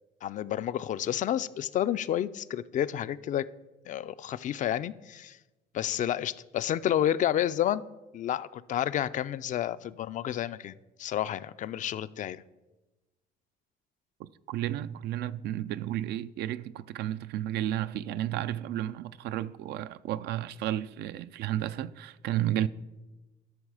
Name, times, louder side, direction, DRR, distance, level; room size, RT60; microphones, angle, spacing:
voice 1, 0.2-3.5 3.9-5.4 5.7-7.8 8.1-12.4, left 11 dB, 50° left, 0.4 m, -30 dB
voice 2, 14.2-22.7, right 12 dB, 75° right, 0.4 m, -32 dB
12.0 x 6.3 x 4.8 m
cardioid pair, 110°, 17 cm